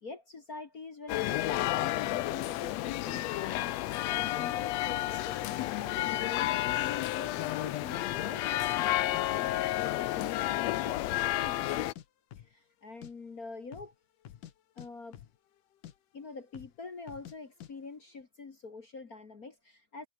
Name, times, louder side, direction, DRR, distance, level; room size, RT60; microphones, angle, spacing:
voice 1, 0.0-11.9 12.4-13.9 14.7-15.2 16.1-20.1, left 4 dB, 40° left, 1.5 m, -45 dB
sound 1, 1.1-11.9, left 16 dB, 75° left, 1.7 m, -31 dB
sound 2, 6.7-6.9 7.4-7.5 8.0-8.3 8.6-9.2 9.5-10.3 10.6-10.7 10.9-11.7 12.0-12.1 12.3-12.5 12.8-13.1 13.6-13.9 14.2-15.6 15.8-16.0 16.5-16.8 17.1-17.4 17.6-17.7, left 11 dB, 90° left, 3.2 m, -49 dB
omnidirectional pair, 3.7 m